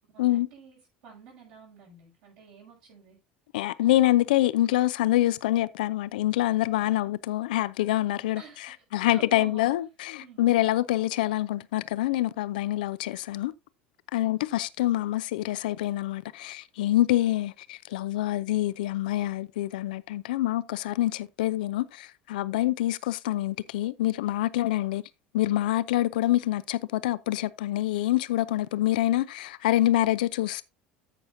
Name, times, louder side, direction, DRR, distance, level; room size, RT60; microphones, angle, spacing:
voice 1, 0.1-3.2 6.9-7.1 8.3-9.7 10.2-10.6 14.1-14.3, right 6 dB, 65° right, 5.7 m, -50 dB
voice 2, 3.5-8.4 8.9-13.5 14.1-25.0 25.3-30.6, left 15 dB, 65° left, 0.4 m, -26 dB
14.5 x 6.2 x 2.6 m
figure-of-eight pair, 70°, 5 cm